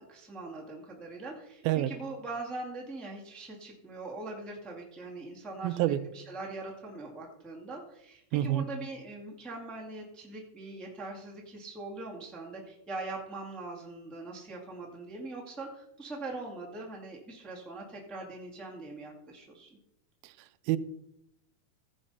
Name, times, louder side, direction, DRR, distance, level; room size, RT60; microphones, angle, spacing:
voice 1, 0.0-19.7, right 2 dB, ahead, 1.1 m, -42 dB
voice 2, 5.6-6.0 8.3-8.6 20.7-20.8, right 13 dB, 90° right, 2.4 m, -26 dB
15.5 x 5.5 x 5.5 m
omnidirectional pair, 4.2 m